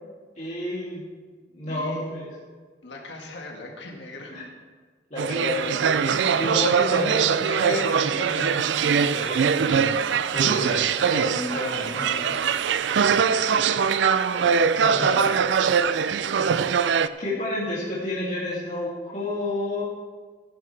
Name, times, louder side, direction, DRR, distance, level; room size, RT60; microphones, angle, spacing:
voice 1, 0.4-1.1 1.5-2.2 4.3-4.4 5.1-12.3 14.8-15.2 17.2-19.8, left 1 dB, 40° left, -8 dB, 2.6 m, -31 dB
voice 2, 1.7-2.0 2.8-4.4 13.0-14.0 14.3-14.6 15.1-15.4, left 1 dB, 85° left, 1 dB, 1.8 m, -41 dB
sound 1, 5.2-17.1, right 7 dB, 85° right, 0.4 m, -22 dB
14.5 x 11.5 x 3.3 m, 1.5 s
head